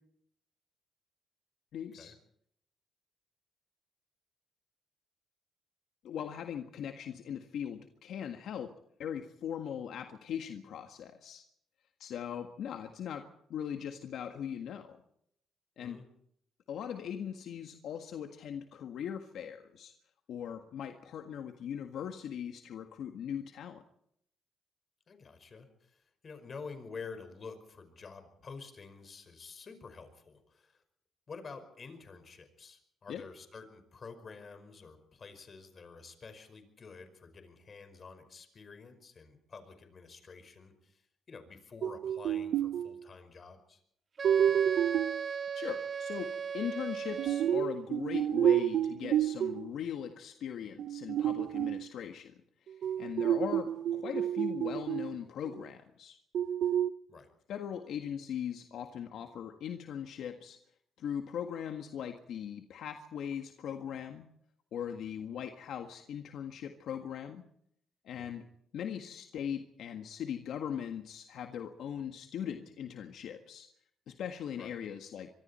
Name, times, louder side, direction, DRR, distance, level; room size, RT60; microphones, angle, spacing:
voice 1, 1.7-2.1 6.0-8.7 9.0-11.4 12.0-15.0 15.8-16.0 16.7-19.9 20.3-23.8 33.1-33.2 45.5-52.4 52.7-56.2 57.5-60.6 61.0-64.2 64.7-67.4 68.0-68.4 68.7-73.7 74.1-75.3, left 8 dB, 75° left, 5 dB, 1.7 m, -40 dB
voice 2, 25.1-30.8 31.3-41.0 41.3-43.8 57.1-57.3 68.2-68.4 74.6-74.7, left 4 dB, 40° left, 8 dB, 5.2 m, -49 dB
sound 1, 41.8-43.0 44.2-45.2 47.1-49.7 50.8-51.9 52.8-55.2 55.4-55.5 56.3-56.9, right 10 dB, 70° right, 0.8 m, -30 dB
Wind instrument woodwind instrument, 44.2-47.7, right 6 dB, 45° right, 1.4 m, -37 dB
25.0 x 23.5 x 4.4 m, 0.71 s
cardioid pair, 90°, 0 cm